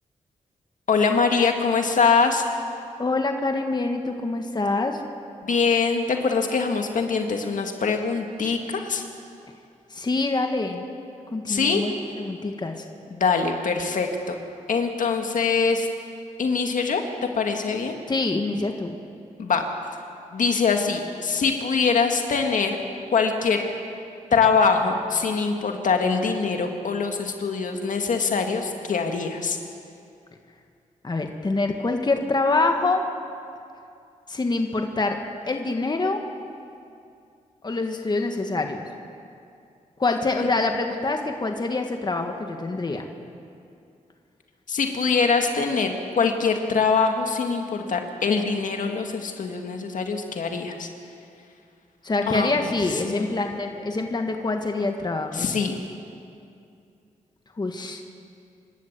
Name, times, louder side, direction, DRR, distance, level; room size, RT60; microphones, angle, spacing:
voice 1, 0.9-2.5 5.4-9.0 11.5-11.8 13.1-14.4 14.7-15.9 16.4-17.0 17.4-17.9 19.4-19.6 20.3-22.8 23.1-23.6 24.3-29.6 44.7-50.9 52.3-52.7 53.0-53.4 55.3-55.8, left 5 dB, 70° left, 4 dB, 2.0 m, -23 dB
voice 2, 3.0-5.0 9.9-10.9 11.3-12.7 18.1-18.9 31.0-33.0 34.3-35.2 35.5-36.2 37.6-38.8 40.0-43.1 52.0-55.5 57.6-58.0, left 3 dB, 30° left, 4 dB, 1.6 m, -25 dB
26.5 x 12.5 x 8.2 m, 2.5 s
cardioid pair, 90°, 14 cm